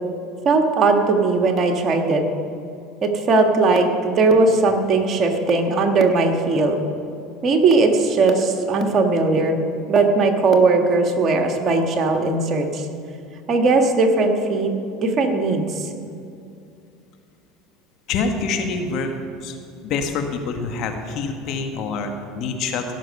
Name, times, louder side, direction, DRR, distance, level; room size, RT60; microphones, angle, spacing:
voice 1, 0.4-2.2 3.0-6.8 7.4-9.6 9.9-12.9 13.5-14.7 15.0-15.9, right 3 dB, 40° right, 3 dB, 1.5 m, -18 dB
voice 2, 18.1-19.1 19.4-19.6 19.8-22.8, left 4 dB, 55° left, 4 dB, 1.4 m, -26 dB
16.5 x 6.3 x 5.4 m, 2.5 s
hypercardioid pair, 85°, 0 cm